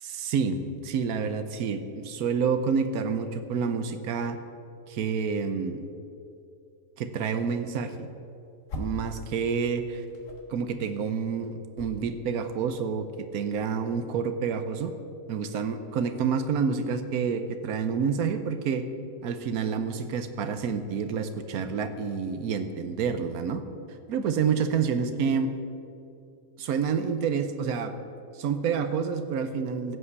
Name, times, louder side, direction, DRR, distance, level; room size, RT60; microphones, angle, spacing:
voice 1, 0.0-4.4 4.9-5.9 7.0-8.1 8.7-10.0 10.5-14.9 15.3-18.8 19.2-23.6 24.1-25.5 26.6-27.9 28.3-30.0, right 6 dB, 85° right, 9 dB, 1.2 m, -28 dB
sound 1, 8.2-9.2 9.4-13.2, left 2 dB, 60° left, 1.8 m, -42 dB
15.5 x 5.6 x 8.1 m, 2.6 s
omnidirectional pair, 1.5 m